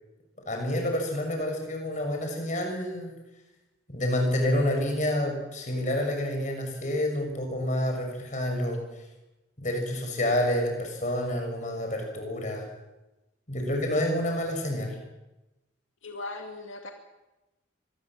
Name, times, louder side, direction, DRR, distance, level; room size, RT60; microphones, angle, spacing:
voice 1, 0.4-3.1 3.9-8.8 9.6-12.7 13.5-15.0, left 1 dB, 40° left, 3 dB, 6.8 m, -28 dB
voice 2, 16.0-16.9, left 2 dB, 80° left, 3 dB, 2.4 m, -38 dB
25.0 x 20.5 x 7.6 m, 1.0 s
head